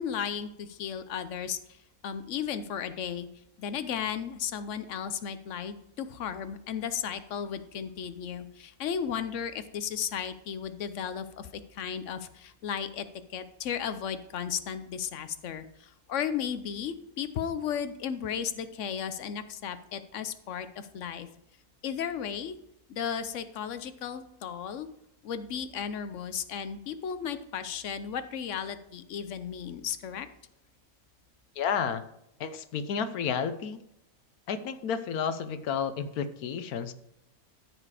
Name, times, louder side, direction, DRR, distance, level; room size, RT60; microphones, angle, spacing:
voice 1, 0.0-3.3 3.6-13.1 13.3-21.3 21.8-22.5 22.9-24.9 25.2-30.3, left 8 dB, 60° left, 11 dB, 1.0 m, -35 dB
voice 2, 31.6-32.0 32.4-33.8 34.5-36.9, left 7 dB, 80° left, 11 dB, 1.3 m, -31 dB
14.0 x 5.0 x 4.9 m, 0.80 s
omnidirectional pair, 1.5 m